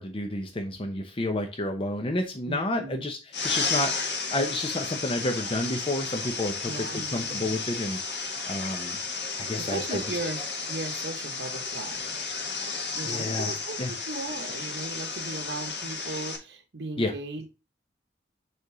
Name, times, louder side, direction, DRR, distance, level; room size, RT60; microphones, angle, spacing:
voice 1, 0.0-3.2 3.4-9.0 9.4-10.2 13.0-13.5 13.8-13.9 17.0-17.1, left 1 dB, 30° left, 4 dB, 0.8 m, -30 dB
voice 2, 2.5-3.0 6.6-7.6 9.6-10.4 10.7-12.2 13.0-17.6, right 2 dB, 75° right, 3 dB, 1.1 m, -37 dB
sound 1, 3.3-16.4, left 4 dB, 75° left, 1.9 m, -33 dB
6.6 x 3.5 x 4.7 m, 0.30 s
head